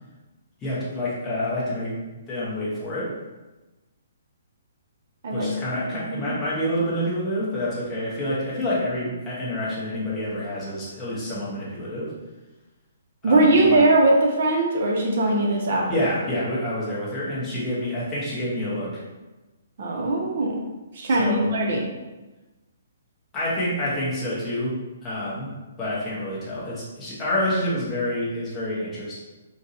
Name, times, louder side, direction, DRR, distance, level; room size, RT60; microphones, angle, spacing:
voice 1, 0.6-2.0 2.3-3.1 5.3-12.1 13.2-13.8 15.9-19.0 21.2-21.5 23.3-24.7 25.0-25.5 25.8-29.2, left 1 dB, 15° left, -8 dB, 0.9 m, -28 dB
voice 2, 5.8-6.3 13.2-16.0 19.8-20.6 20.9-21.9, right 2 dB, 50° right, 0 dB, 0.6 m, -20 dB
3.7 x 2.7 x 2.6 m, 1.1 s
hypercardioid pair, 165°, 0 cm